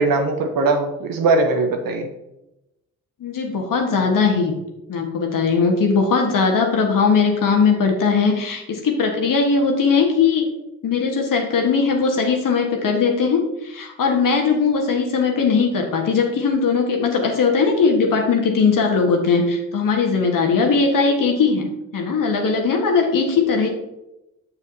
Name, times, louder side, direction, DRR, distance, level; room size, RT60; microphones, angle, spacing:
voice 1, 0.0-2.1, right 3 dB, 70° right, 5 dB, 1.0 m, -20 dB
voice 2, 3.2-4.5 4.9-10.4 10.8-13.4 13.6-23.7, left 5 dB, 65° left, 2 dB, 1.5 m, -19 dB
6.9 x 6.9 x 2.8 m, 0.92 s
hypercardioid pair, 40°, 35 cm